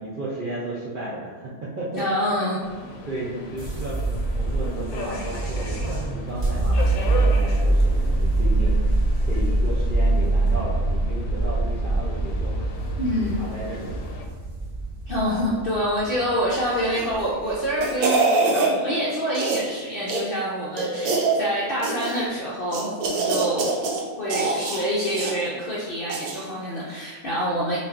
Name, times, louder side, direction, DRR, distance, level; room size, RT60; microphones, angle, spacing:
voice 1, 0.0-2.0 3.1-8.8 9.3-12.6 13.4-14.0, right 1 dB, 55° right, -7 dB, 0.5 m, -33 dB
voice 2, 2.0-2.6 13.0-13.5 15.1-18.3 18.5-23.6 24.2-27.8, equal, 60° left, -6 dB, 0.6 m, -26 dB
Subway metro underground, 2.6-14.2, left 4 dB, 75° left, 1.0 m, -37 dB
sound 1, 3.6-17.8, right 2 dB, 40° right, 0.9 m, -24 dB
sound 2, 16.9-17.2 17.6-18.7 19.3-19.7 20.1-20.2 20.8-21.4 21.8-22.3 22.7-24.0 24.3-25.4 26.1-26.4 26.8-26.9, right 3 dB, 80° right, 1.1 m, -24 dB
5.3 x 2.4 x 2.5 m, 1.4 s
omnidirectional pair, 1.5 m